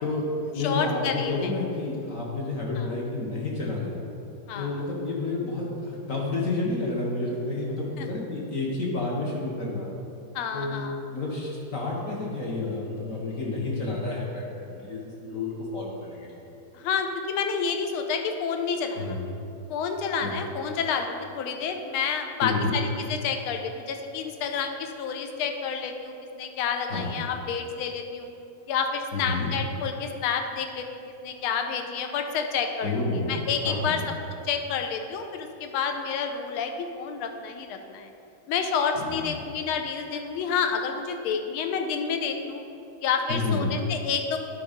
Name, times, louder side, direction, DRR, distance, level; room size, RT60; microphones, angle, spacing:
voice 1, 0.0-3.9 4.5-9.9 10.5-10.8 11.1-16.4 19.0-19.2 20.2-20.3 22.4-22.8 26.9-27.1 29.1-29.5 32.8-33.3 33.6-34.0 39.0-39.3 43.3-43.7, left 3 dB, 50° left, -3 dB, 1.1 m, -30 dB
voice 2, 0.6-1.5 2.8-3.0 4.5-4.8 8.0-8.1 10.3-11.0 16.7-19.2 19.7-28.3 28.7-34.1 34.4-38.1 38.5-42.6 43.0-44.4, left 6 dB, 85° left, 6 dB, 1.5 m, -29 dB
9.8 x 3.8 x 5.0 m, 2.7 s
omnidirectional pair, 2.3 m